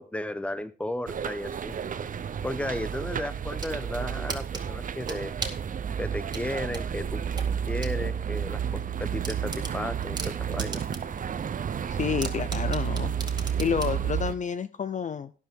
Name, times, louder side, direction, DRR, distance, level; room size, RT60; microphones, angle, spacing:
voice 1, 0.0-1.8 2.4-5.3 6.0-7.2 7.5-10.8, left 1 dB, 5° left, 14 dB, 0.9 m, -34 dB
sound 1, 1.1-14.3, right 8 dB, 40° right, 0.8 m, -31 dB
sound 2, 3.3-3.8 4.3-5.7 6.3-8.0 8.3-8.4 8.8-8.9 9.2-11.2 11.6-11.7 12.2-14.0, right 3 dB, 20° right, 2.1 m, -37 dB
voice 2, 11.9-13.1 13.6-15.3, left 7 dB, 40° left, 14 dB, 0.6 m, -29 dB
12.0 x 10.5 x 3.7 m, 0.36 s
cardioid pair, 90°, 20 cm